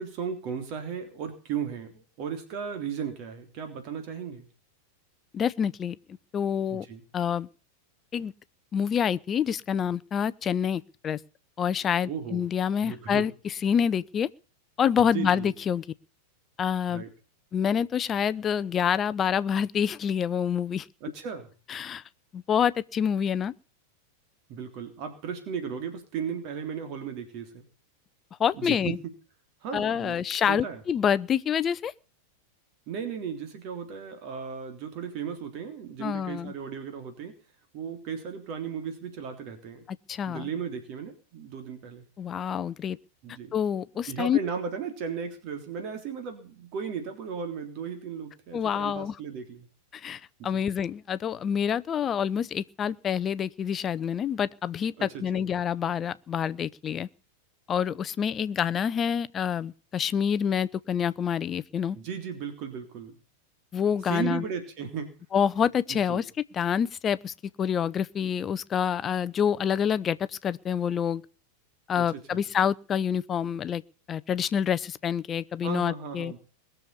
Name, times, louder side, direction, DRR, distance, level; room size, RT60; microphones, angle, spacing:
voice 1, 0.0-4.5 6.7-7.0 12.1-12.5 12.8-13.2 15.1-15.5 16.9-17.1 21.0-21.5 24.5-27.6 28.6-29.1 29.6-30.2 30.5-30.8 32.9-37.3 37.7-39.8 40.3-42.1 43.2-43.6 44.1-49.7 50.4-50.6 55.0-55.5 61.9-63.2 64.1-65.1 65.9-66.2 72.0-72.4 75.6-76.4, right 7 dB, 40° right, 3.4 m, -36 dB
voice 2, 5.3-6.9 7.1-7.5 8.1-8.3 8.7-11.2 11.6-14.3 14.8-15.8 16.6-17.0 17.5-20.9 21.7-22.0 22.3-23.5 28.4-29.0 29.7-31.9 36.0-36.5 39.9-40.5 42.2-43.0 43.5-44.4 48.5-49.2 49.9-57.1 57.7-62.0 63.7-64.4 65.3-66.3 66.5-71.2 71.9-73.8 74.1-76.3, left 8 dB, 25° left, 0.7 m, -27 dB
21.0 x 7.1 x 8.4 m
figure-of-eight pair, 90°, 0 cm